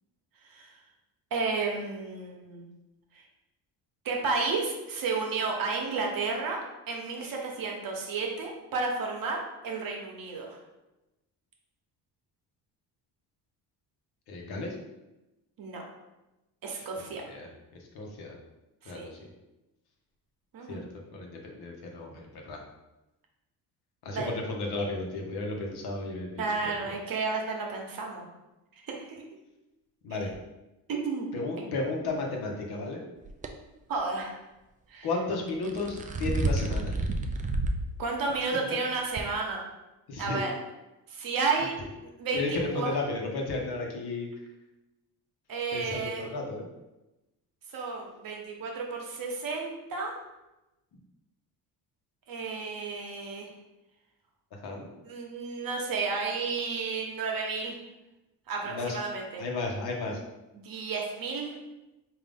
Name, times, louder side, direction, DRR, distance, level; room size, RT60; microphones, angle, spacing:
voice 1, 0.4-0.8 1.3-2.7 3.1-3.2 4.0-10.6 15.6-15.8 16.6-17.2 18.8-19.1 20.5-20.8 24.1-24.3 26.4-28.2 28.8-29.2 30.1-30.2 30.9-31.7 33.9-34.4 34.9-35.1 38.0-39.7 40.2-40.6 41.1-41.8 42.2-42.9 45.5-46.3 47.7-50.1 52.3-53.5 55.0-57.8 58.5-59.4 60.5-61.6, right 4 dB, 55° right, 0 dB, 1.0 m, -32 dB
voice 2, 14.3-14.7 17.0-17.5 17.9-18.3 18.9-19.3 20.7-20.9 21.1-22.6 24.0-26.7 30.0-30.3 31.3-33.0 35.0-37.0 38.5-38.6 40.1-40.4 42.3-44.3 45.7-46.7 54.6-54.9 58.7-59.0 59.4-60.2, left 2 dB, 70° left, 0 dB, 1.0 m, -33 dB
sound 1, 33.2-33.5 35.5-37.9 38.3-38.4 39.2-39.3, right 2 dB, 20° right, 0.3 m, -29 dB
3.8 x 2.7 x 3.5 m, 0.99 s
cardioid pair, 90°, 40 cm